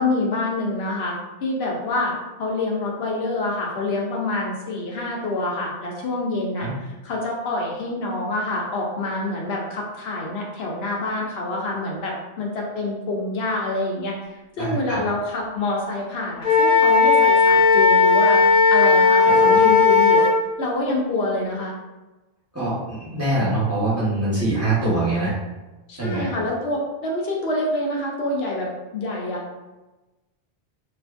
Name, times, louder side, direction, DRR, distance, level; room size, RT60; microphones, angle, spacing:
voice 1, 0.0-20.3 20.6-21.7 25.9-29.4, left 2 dB, 75° left, -2 dB, 0.8 m, -26 dB
voice 2, 14.6-15.0 19.3-19.6 22.5-25.3 26.0-26.3, right 2 dB, 15° right, -8 dB, 0.9 m, -24 dB
Wind instrument woodwind instrument, 16.4-20.3, left 4 dB, 45° left, 0.7 m, -15 dB
2.9 x 2.4 x 2.4 m, 1.1 s
omnidirectional pair, 1.1 m